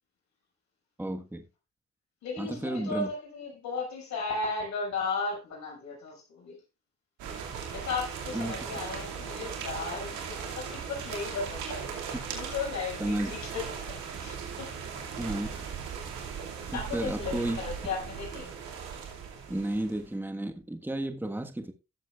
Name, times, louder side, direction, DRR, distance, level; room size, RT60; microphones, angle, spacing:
voice 1, 1.0-1.4 2.4-3.1 8.3-8.5 12.1-12.2 13.0-13.3 15.2-15.5 16.7-17.6 19.5-21.7, right 1 dB, 5° right, 1.4 m, -32 dB
voice 2, 2.2-6.6 7.7-14.7 16.7-18.5, left 4 dB, 70° left, 6.1 m, -35 dB
sound 1, 7.2-20.1, right 6 dB, 85° right, 2.5 m, -38 dB
17.5 x 7.4 x 2.4 m
supercardioid pair, 60°, 29 cm